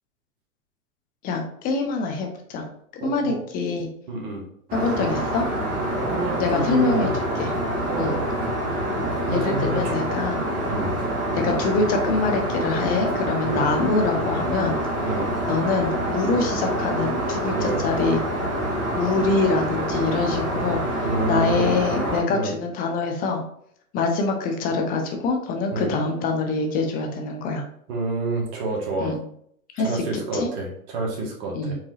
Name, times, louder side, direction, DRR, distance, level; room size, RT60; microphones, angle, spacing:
voice 1, 1.2-2.7 2.9-3.9 4.7-5.5 6.4-7.1 7.4-7.5 8.0-8.2 9.3-10.4 11.3-14.8 15.5-18.2 19.0-23.4 23.9-27.6 29.0-29.2 29.8-30.0 30.3-30.5 31.5-31.8, left 3 dB, 20° left, 3 dB, 0.6 m, -25 dB
voice 2, 3.0-3.4 4.1-4.4 6.0-7.1 7.9-8.2 9.3-10.0 10.7-11.3 13.5-13.7 15.1-15.3 17.6-17.8 21.1-21.7 22.3-22.5 25.7-25.9 27.9-29.2 29.8-31.8, right 2 dB, 45° right, -1 dB, 1.7 m, -28 dB
Aircraft, 4.7-22.2, right 1 dB, 20° right, 1.6 m, -26 dB
4.8 x 3.5 x 3.1 m, 0.67 s
hypercardioid pair, 135°, 43 cm